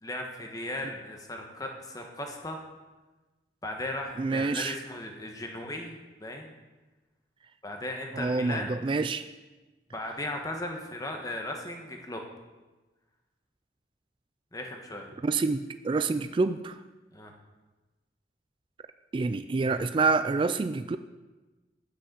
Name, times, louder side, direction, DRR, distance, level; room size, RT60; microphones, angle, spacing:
voice 1, 0.0-2.6 3.6-6.5 7.6-8.8 9.9-12.2 14.5-15.1 17.1-17.3, left 1 dB, 20° left, 2 dB, 1.2 m, -37 dB
voice 2, 4.2-4.7 8.1-9.3 15.2-16.8 19.1-21.0, right 3 dB, 30° right, 11 dB, 0.3 m, -27 dB
8.0 x 6.5 x 7.8 m, 1.2 s
head